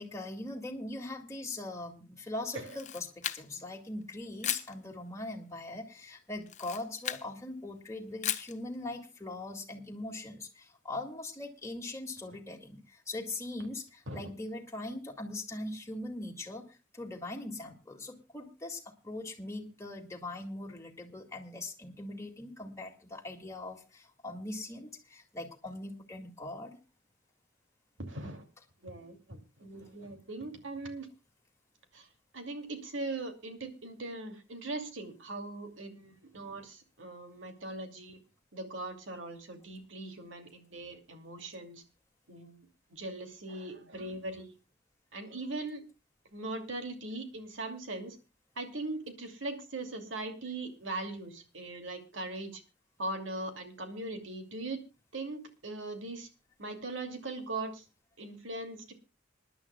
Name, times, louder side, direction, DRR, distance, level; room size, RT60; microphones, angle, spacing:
voice 1, 0.0-3.1 3.3-26.8, left 2 dB, 15° left, 1 dB, 2.2 m, -41 dB
Camera, 2.5-3.7 4.4-4.7 6.4-7.3 8.2-8.6, left 10 dB, 40° left, 0.8 m, -36 dB
voice 2, 28.0-28.4 28.8-31.1 31.9-32.1 32.3-38.2 38.5-41.8 42.3-42.7 42.9-44.6 45.1-45.8 46.3-48.2 48.6-52.6 53.0-54.8 55.1-56.3 56.6-57.8 58.2-58.9, right 2 dB, 75° right, 6 dB, 2.5 m, -40 dB
26.5 x 11.0 x 2.3 m, 0.29 s
head